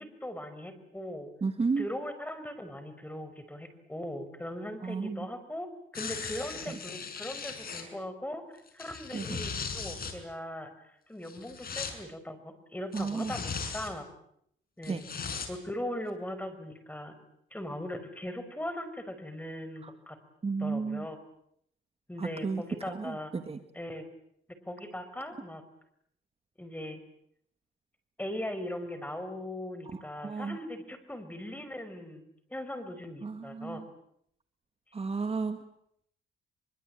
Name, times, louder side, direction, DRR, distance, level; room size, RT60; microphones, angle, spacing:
voice 1, 0.0-1.3 1.6-5.7 5.9-8.4 8.7-10.7 11.1-14.0 14.8-15.1 15.5-17.1 17.5-20.2 20.6-21.2 22.1-23.3 23.7-24.0 24.7-25.6 26.6-27.0 28.2-33.8, left 1 dB, 10° left, 10 dB, 5.5 m, -39 dB
voice 2, 1.4-1.9 4.8-5.3 6.7-6.8 9.1-9.4 12.9-13.3 14.9-15.0 19.8-19.9 20.4-21.1 22.2-23.6 29.9-30.6 33.2-33.9 34.9-35.6, right 4 dB, 30° right, 8 dB, 1.9 m, -33 dB
sound 1, 5.9-7.8 8.7-10.1 11.2-11.9 12.9-13.9 14.8-15.5 16.1-16.2, left 5 dB, 50° left, 6.4 m, -38 dB
24.5 x 23.5 x 9.1 m, 0.73 s
cardioid pair, 90°, 20 cm